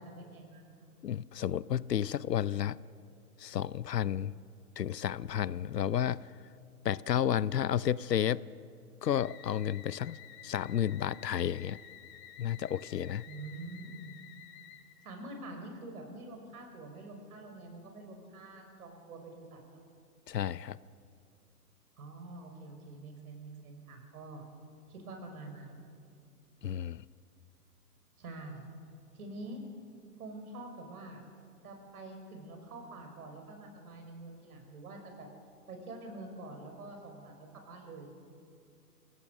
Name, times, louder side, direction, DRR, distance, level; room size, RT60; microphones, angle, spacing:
voice 1, 0.0-0.9 13.3-14.2 15.0-19.8 22.0-24.4 24.9-26.0 28.2-28.7 29.1-29.6 30.2-31.2 31.6-35.3 35.7-38.2, right 2 dB, 65° right, 3 dB, 5.6 m, -46 dB
voice 2, 1.0-2.8 3.4-4.3 4.8-6.3 6.8-8.4 9.0-10.2 10.4-11.8 12.4-13.2 20.3-20.8 26.6-27.0, left 10 dB, 85° left, 21 dB, 0.7 m, -31 dB
sound 1, 9.0-15.1, left 10 dB, 25° left, 1.5 m, -52 dB
26.5 x 17.0 x 6.4 m, 2.4 s
hypercardioid pair, 130°, 48 cm